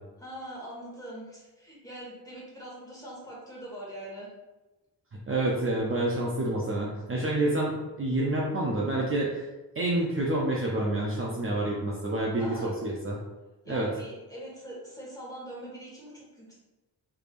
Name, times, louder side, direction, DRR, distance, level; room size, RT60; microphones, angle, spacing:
voice 1, 0.2-4.3 12.4-12.8 13.6-16.5, right 1 dB, 10° left, -6 dB, 1.3 m, -42 dB
voice 2, 5.3-9.5 9.8-13.2 13.7-13.9, right 1 dB, 35° right, -3 dB, 0.5 m, -28 dB
3.4 x 3.3 x 2.5 m, 1.1 s
cardioid pair, 90°, 40 cm